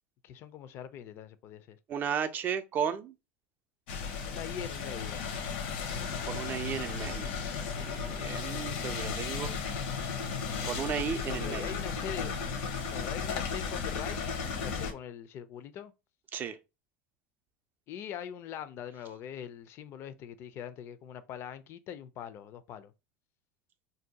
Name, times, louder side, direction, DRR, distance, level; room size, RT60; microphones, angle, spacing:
voice 1, 0.2-1.8 4.2-5.2 11.3-12.3 12.9-14.2 14.4-15.9 17.9-22.9, left 9 dB, 40° left, 0.4 m, -42 dB
voice 2, 1.9-3.1 6.3-7.3 7.8-9.5 10.6-11.7 16.3-16.6, right 8 dB, 30° right, 0.4 m, -34 dB
sound 1, 3.9-14.9, left 5 dB, 70° left, 0.7 m, -35 dB
2.6 x 2.2 x 3.9 m
supercardioid pair, 125°, 6 cm